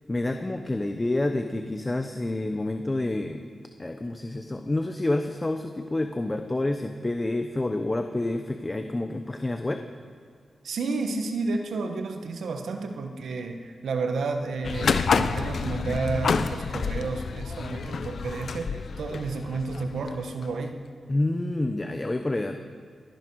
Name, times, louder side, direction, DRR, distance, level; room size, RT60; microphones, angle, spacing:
voice 1, 0.1-3.5 3.8-9.8 21.1-22.6, left 2 dB, 25° left, 6 dB, 0.8 m, -28 dB
voice 2, 10.6-20.8, right 3 dB, 85° right, 5 dB, 1.3 m, -31 dB
sound 1, 14.6-20.5, left 5 dB, 75° left, 0.7 m, -28 dB
19.5 x 11.0 x 4.8 m, 2.2 s
cardioid pair, 60°, 0 cm